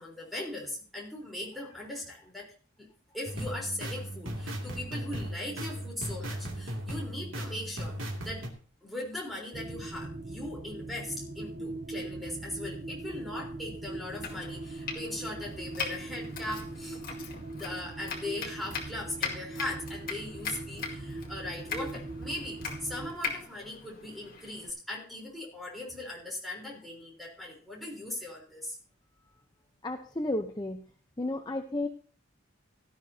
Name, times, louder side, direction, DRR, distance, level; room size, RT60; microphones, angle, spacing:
voice 1, 0.0-8.5 8.8-17.0 17.5-28.8, left 1 dB, ahead, -4 dB, 4.0 m, -39 dB
sound 1, 3.3-8.5, equal, 70° right, 2.6 m, -37 dB
sound 2, 9.5-23.1, right 2 dB, 35° right, 0.7 m, -41 dB
Domestic sounds home sounds, 14.0-24.7, left 5 dB, 45° left, 2.3 m, -40 dB
voice 2, 29.8-30.8 31.2-31.9, left 1 dB, 20° left, 4 dB, 0.8 m, -32 dB
17.0 x 12.5 x 2.8 m, 0.41 s
head